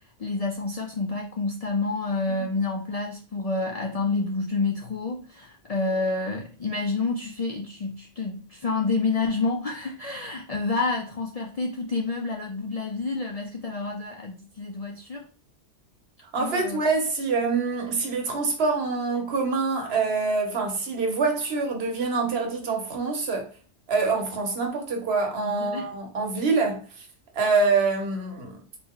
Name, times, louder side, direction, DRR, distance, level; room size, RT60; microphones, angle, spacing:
voice 1, 0.2-15.2 16.4-16.8 25.4-25.9, left 3 dB, 65° left, 0.3 m, -29 dB
voice 2, 16.3-23.5 23.9-26.8 27.3-28.6, right 4 dB, 65° right, 1.1 m, -25 dB
4.2 x 2.2 x 3.6 m
omnidirectional pair, 1.2 m